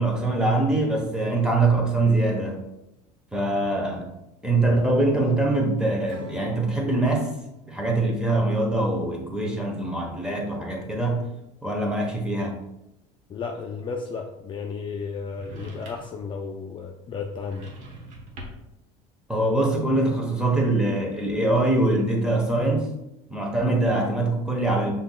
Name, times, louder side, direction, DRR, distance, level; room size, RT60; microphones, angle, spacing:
voice 1, 0.0-2.6 3.3-4.1 4.4-7.3 7.7-11.3 11.6-12.6 19.3-22.9 23.3-24.9, right 2 dB, 5° right, 0 dB, 1.1 m, -23 dB
Acoustic guitar / Strum, 6.1-9.4, left 2 dB, 80° right, 1.3 m, -46 dB
voice 2, 13.3-17.7, left 5 dB, 30° left, 2 dB, 0.4 m, -33 dB
sound 1, 15.3-16.2 17.3-18.8, right 1 dB, 55° right, 1.3 m, -42 dB
5.6 x 4.1 x 2.3 m, 0.88 s
supercardioid pair, 115°, 15 cm